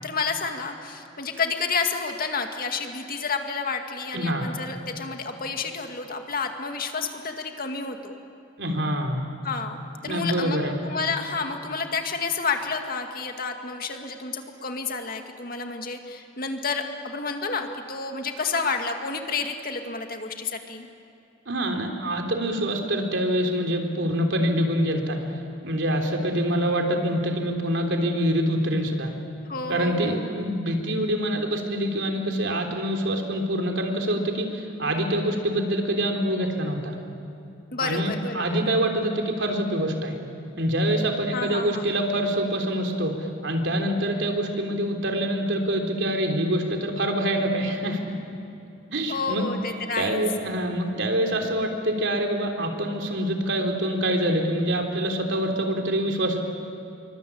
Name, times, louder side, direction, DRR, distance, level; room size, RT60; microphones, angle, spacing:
voice 1, 0.0-8.2 9.4-9.8 10.0-20.9 29.5-30.3 37.7-38.6 41.3-41.8 49.1-50.2, left 4 dB, 45° left, 4 dB, 2.2 m, -30 dB
voice 2, 4.1-4.5 8.6-9.2 10.0-10.7 21.5-25.2 25.6-29.1 29.7-37.0 37.8-40.2 40.6-48.0 48.9-49.5 50.0-56.4, equal, 70° right, 3 dB, 3.6 m, -25 dB
27.0 x 24.0 x 8.7 m, 2.8 s
head